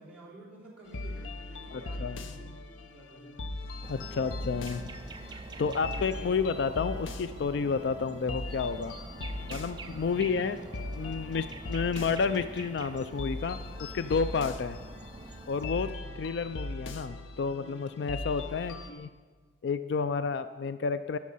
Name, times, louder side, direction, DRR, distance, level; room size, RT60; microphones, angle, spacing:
voice 1, 0.0-2.5 2.8-3.6 5.5-6.3 10.0-10.2 15.7-16.2 18.5-18.7, right 1 dB, 5° right, -7 dB, 2.9 m, -51 dB
sound 1, 0.9-18.9, left 2 dB, 75° left, 0.7 m, -40 dB
voice 2, 1.7-2.2 3.9-4.8 5.6-8.9 9.5-10.6 11.0-14.8 15.5-19.1 19.6-21.2, left 5 dB, 60° left, 12 dB, 0.3 m, -31 dB
sound 2, 3.8-15.7, right 3 dB, 20° right, 0.3 m, -46 dB
16.0 x 6.4 x 5.5 m, 1.5 s
head